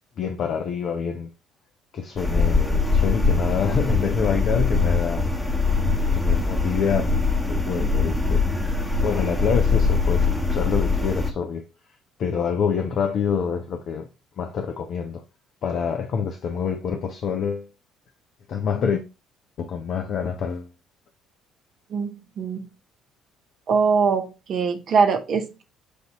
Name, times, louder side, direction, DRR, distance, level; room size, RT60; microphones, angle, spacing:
voice 1, 0.2-1.3 1.9-5.2 6.1-7.1 7.5-8.4 9.0-11.6 12.2-14.1 14.4-15.2 15.6-17.7 18.5-19.0 19.6-20.7, left 6 dB, 50° left, 0.5 m, -26 dB
sound 1, 2.2-11.3, left 4 dB, 5° left, 1.0 m, -22 dB
voice 2, 21.9-22.7 23.7-25.6, right 5 dB, 45° right, 0.6 m, -22 dB
6.3 x 2.6 x 2.9 m
figure-of-eight pair, 50°, 0 cm